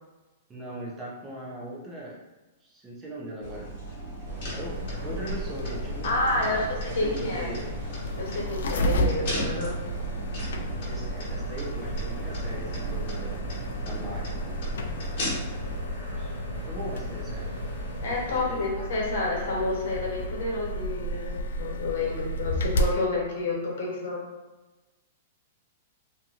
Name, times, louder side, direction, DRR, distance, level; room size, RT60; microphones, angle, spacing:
voice 1, 0.5-2.2 2.6-3.7 4.5-7.7 10.9-13.4 13.8-14.4 16.1-17.5 18.3-18.7, right 1 dB, 15° right, -5 dB, 0.6 m, -39 dB
sound 1, 3.4-15.8, equal, 45° left, 1.3 m, -37 dB
sound 2, 4.2-18.4, equal, 60° right, 0.7 m, -39 dB
sound 3, 4.3-23.0, equal, 90° left, 0.3 m, -33 dB
voice 2, 6.0-7.5 8.2-9.8 18.0-24.2, left 2 dB, 70° left, -2 dB, 0.9 m, -29 dB
2.7 x 2.6 x 2.5 m, 1.1 s
hypercardioid pair, 160°, 0 cm